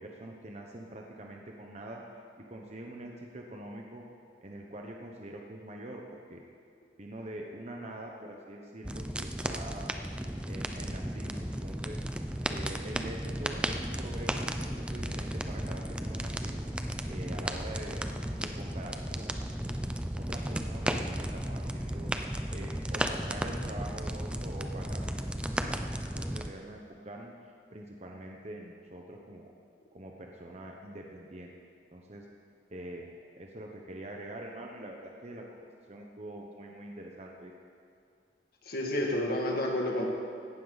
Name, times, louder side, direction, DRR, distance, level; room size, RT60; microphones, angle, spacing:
voice 1, 0.0-2.0 2.5-4.0 4.4-6.0 6.3-6.4 7.0-9.9 10.4-12.0 12.5-16.6 17.1-18.1 18.4-19.4 20.2-22.1 22.5-25.2 26.1-27.3 27.7-29.5 29.9-31.5 31.9-32.3 32.7-33.1 33.4-35.4 35.9-37.5, right 1 dB, 35° right, 0 dB, 1.0 m, -44 dB
sound 1, 8.8-26.5, right 1 dB, 5° right, 0.5 m, -34 dB
voice 2, 38.6-40.0, left 1 dB, 55° left, -1 dB, 2.2 m, -30 dB
17.0 x 12.0 x 4.1 m, 2.4 s
head